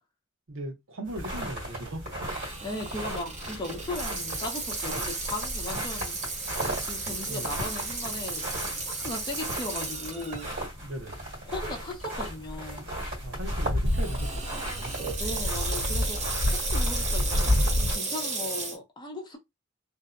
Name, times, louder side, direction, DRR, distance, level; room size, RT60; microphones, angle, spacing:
voice 1, 0.5-2.1 7.3-7.6 10.8-11.3 13.2-15.1, right 1 dB, 85° right, 0.8 m, -39 dB
sound 1, 1.1-18.0, equal, 65° right, 1.5 m, -32 dB
Water tap faucet / Sink (filling or washing), 2.3-10.7 11.2-11.3 12.0-12.3 13.9-18.8, right 3 dB, 35° right, 0.8 m, -34 dB
voice 2, 2.6-6.2 6.8-10.5 11.5-12.9 15.2-19.4, left 1 dB, 25° left, 0.7 m, -37 dB
2.6 x 2.1 x 2.4 m
head